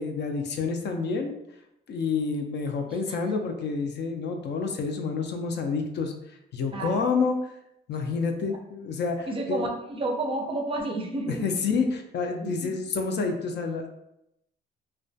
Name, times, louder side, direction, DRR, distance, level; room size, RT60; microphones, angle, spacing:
voice 1, 0.0-1.4 1.9-6.1 6.5-7.5 7.9-9.6 11.3-13.9, left 4 dB, 60° left, 5 dB, 0.4 m, -28 dB
voice 2, 6.7-7.0 9.3-11.5 12.4-12.8, right 2 dB, 25° right, 2 dB, 0.4 m, -31 dB
2.2 x 2.1 x 2.6 m, 0.82 s
cardioid pair, 90°, 20 cm